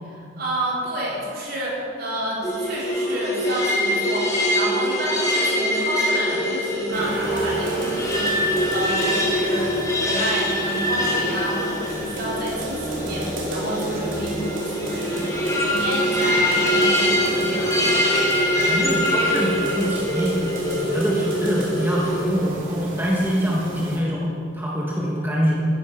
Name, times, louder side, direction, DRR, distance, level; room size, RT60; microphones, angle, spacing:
voice 1, 0.0-15.2 15.6-17.8, right 1 dB, 50° right, -5 dB, 4.2 m, -30 dB
sound 1, 2.4-22.2, equal, 15° left, 2.1 m, -23 dB
sound 2, 6.9-24.0, right 1 dB, 80° right, 2.9 m, -32 dB
voice 2, 18.6-20.4 20.7-25.6, equal, 10° right, -5 dB, 1.6 m, -24 dB
14.0 x 11.0 x 6.0 m, 2.5 s
head